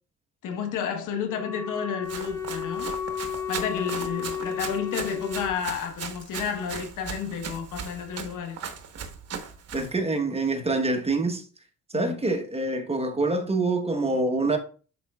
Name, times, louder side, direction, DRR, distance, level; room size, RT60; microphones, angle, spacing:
voice 1, 0.4-2.9 3.5-8.6 11.9-12.2, left 7 dB, 85° left, 1.2 m, -31 dB
Wind instrument woodwind instrument, 1.2-5.6, left 7 dB, 10° left, 0.5 m, -33 dB
Run, 2.0-10.0, right 6 dB, 55° right, 1.1 m, -38 dB
voice 2, 9.7-11.4 11.9-14.6, right 2 dB, 20° right, 1.1 m, -25 dB
11.0 x 4.4 x 2.4 m
cardioid pair, 90°, 30 cm